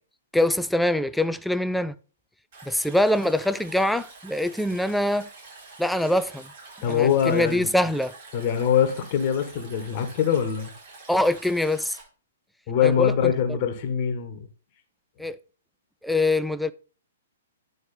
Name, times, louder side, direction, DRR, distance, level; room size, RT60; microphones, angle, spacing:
voice 1, 0.3-1.9 2.6-5.3 5.8-6.5 6.8-8.1 11.1-12.0 12.8-13.6 15.2-15.4 16.0-16.7, left 1 dB, ahead, 0.3 m, -24 dB
Stream, 2.5-12.0, right 3 dB, 50° right, 4.6 m, -47 dB
voice 2, 6.8-7.7 8.3-10.7 12.7-14.5, left 8 dB, 40° left, 1.3 m, -23 dB
9.7 x 4.8 x 4.2 m
figure-of-eight pair, 120°, 0 cm